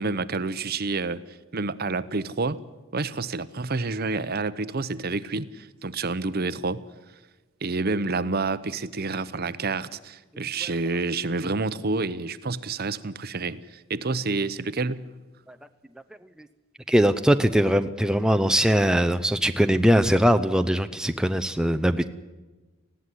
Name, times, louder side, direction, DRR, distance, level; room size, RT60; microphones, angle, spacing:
voice 1, 0.0-2.6 2.9-6.8 7.6-15.1, right 3 dB, 50° right, 16 dB, 0.8 m, -29 dB
voice 2, 16.9-22.1, equal, 5° right, 7 dB, 0.6 m, -21 dB
19.5 x 15.5 x 9.9 m, 1.2 s
head